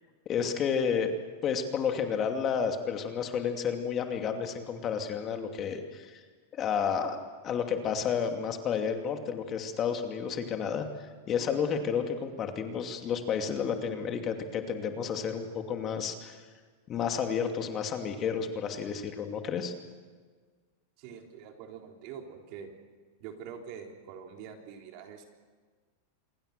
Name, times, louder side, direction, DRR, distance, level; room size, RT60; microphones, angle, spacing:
voice 1, 0.3-1.1 1.4-6.2 6.5-7.2 7.4-10.9 11.3-16.4 16.9-19.7, left 7 dB, 30° left, 5 dB, 2.5 m, -31 dB
voice 2, 21.0-22.7 23.2-25.2, right 7 dB, 50° right, 2 dB, 3.9 m, -45 dB
27.0 x 21.5 x 6.8 m, 1.5 s
supercardioid pair, 130°, 0 cm